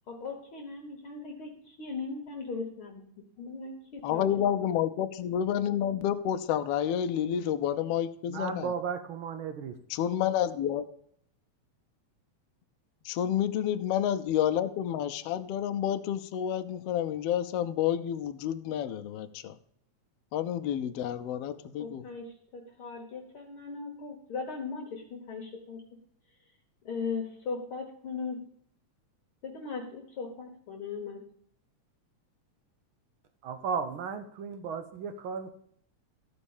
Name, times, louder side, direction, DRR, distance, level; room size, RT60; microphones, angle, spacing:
voice 1, 0.2-1.5 1.8-3.0 3.4-4.3 21.8-22.3 22.5-25.8 26.9-28.4 29.4-31.2, left 4 dB, 55° left, 2 dB, 1.7 m, -38 dB
voice 2, 4.0-8.7 9.9-10.8 13.0-19.6 20.3-22.0, left 10 dB, 75° left, 8 dB, 1.5 m, -29 dB
voice 3, 8.3-9.7 33.4-35.6, right 6 dB, 80° right, 9 dB, 1.1 m, -35 dB
14.0 x 5.3 x 7.1 m, 0.64 s
omnidirectional pair, 3.3 m